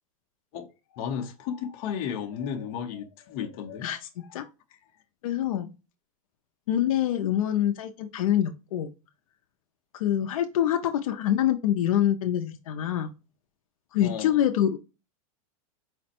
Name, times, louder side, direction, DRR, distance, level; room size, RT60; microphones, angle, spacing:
voice 1, 0.5-3.9 4.4-4.5 14.0-14.3, left 8 dB, 40° left, 0.8 m, -34 dB
voice 2, 3.8-4.4 5.2-5.7 6.7-8.9 9.9-13.1 13.9-14.8, left 11 dB, 75° left, 0.6 m, -25 dB
5.0 x 2.1 x 4.3 m
supercardioid pair, 160°, 18 cm